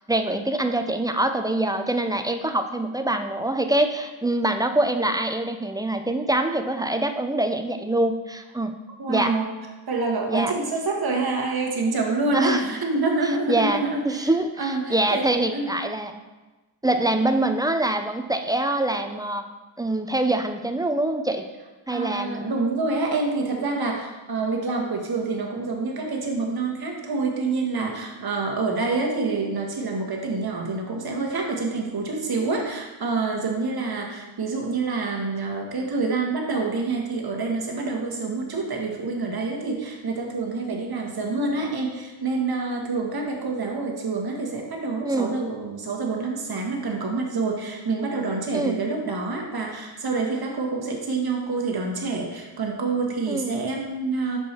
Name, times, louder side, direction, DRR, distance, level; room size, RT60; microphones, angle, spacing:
voice 1, 0.1-8.7 9.1-9.3 10.3-10.5 12.3-12.7 13.5-16.2 16.8-19.4 19.8-21.4 21.9-22.5 45.0-45.4 48.5-48.8 53.3-53.6, right 1 dB, 10° right, 6 dB, 0.4 m, -24 dB
voice 2, 9.0-9.5 9.9-14.3 14.6-15.7 17.0-17.1 21.9-54.4, right 3 dB, 50° right, 1 dB, 1.3 m, -27 dB
5.3 x 4.7 x 4.3 m, 1.2 s
cardioid pair, 60°, 48 cm